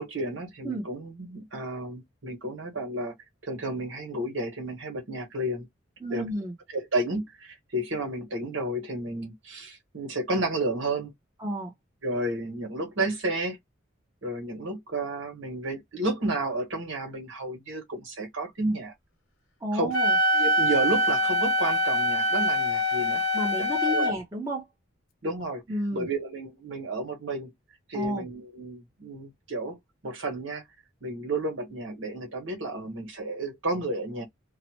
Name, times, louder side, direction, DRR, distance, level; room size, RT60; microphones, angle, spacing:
voice 1, 0.0-3.1 3.4-5.7 6.1-6.2 6.7-11.1 12.0-13.6 14.2-18.9 19.7-19.9 20.3-23.2 23.6-24.1 25.2-25.6 25.9-27.5 27.9-29.8 30.0-30.6 31.0-34.2, right 2 dB, 75° right, 1.4 m, -31 dB
voice 2, 6.0-6.5 11.4-11.7 19.6-20.2 23.3-24.6 25.7-26.1 27.9-28.2, right 1 dB, 15° right, 0.8 m, -31 dB
Wind instrument woodwind instrument, 19.9-24.1, equal, 85° left, 1.0 m, -24 dB
2.8 x 2.2 x 2.9 m
head